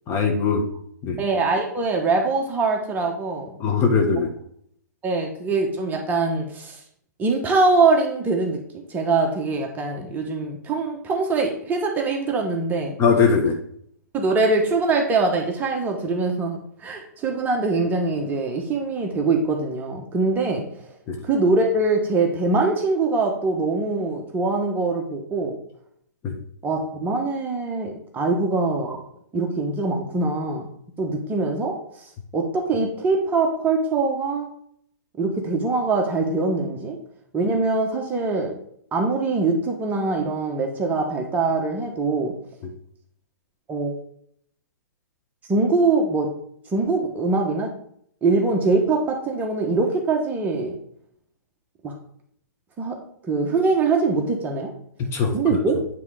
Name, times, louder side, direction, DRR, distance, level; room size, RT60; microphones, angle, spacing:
voice 1, 0.1-0.6 1.0-1.2 3.6-4.3 13.0-13.6 21.1-21.2 26.2-26.4 55.1-55.6, left 5 dB, 25° left, 4 dB, 1.4 m, -20 dB
voice 2, 1.2-3.6 4.1-4.2 5.0-6.8 7.2-8.6 8.9-13.0 14.1-20.9 21.2-25.6 26.6-29.0 29.3-30.7 31.0-34.5 35.2-37.0 37.3-38.5 38.9-42.3 43.7-44.0 45.5-46.3 46.7-47.7 48.2-50.8 51.8-51.9 52.8-53.0 53.2-54.7 55.3-55.7, right 3 dB, 15° right, 1 dB, 1.3 m, -23 dB
9.1 x 3.6 x 5.0 m, 0.66 s
hypercardioid pair, 135°, 10 cm